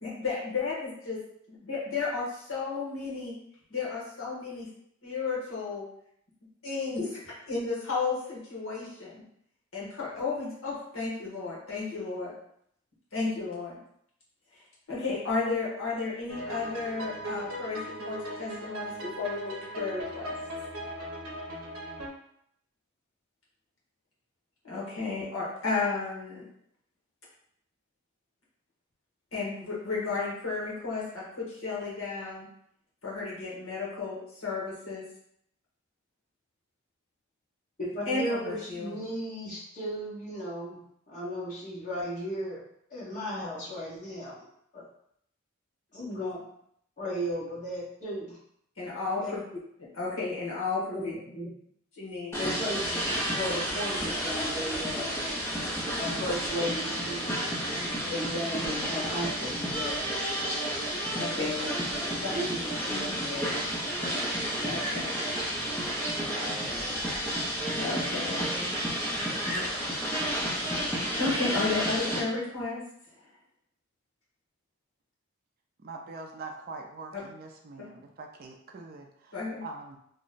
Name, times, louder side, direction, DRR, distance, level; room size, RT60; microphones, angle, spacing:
voice 1, 0.0-1.2 1.5-3.4 3.7-4.7 5.0-5.8 6.6-9.2 9.7-12.3 13.1-13.8 14.9-17.8 18.0-20.3 24.6-26.4 29.3-32.5 33.0-35.0 38.1-39.0 48.8-49.4 49.9-51.1 52.0-52.4 61.2-61.5 62.2-62.3 62.9-63.1 64.5-65.2 67.3-67.4 67.7-68.4 71.2-72.8 79.3-79.6, left 4 dB, 65° left, -5 dB, 1.2 m, -33 dB
sound 1, 16.3-22.1, right 1 dB, 75° right, 0.7 m, -38 dB
voice 2, 37.8-40.8 41.1-42.6 42.9-44.5 44.7-44.9 45.9-46.4 47.0-48.4 49.2-49.3 50.9-51.5 52.4-53.0 53.3-55.1 56.0-57.3 58.1-60.1 61.3-61.7 62.1-63.6, equal, 35° left, -8 dB, 1.3 m, -35 dB
sound 2, 52.3-72.2, equal, 10° left, 0.6 m, -31 dB
voice 3, 75.8-80.0, right 3 dB, 40° right, 3 dB, 0.3 m, -43 dB
2.9 x 2.1 x 3.9 m, 0.70 s
head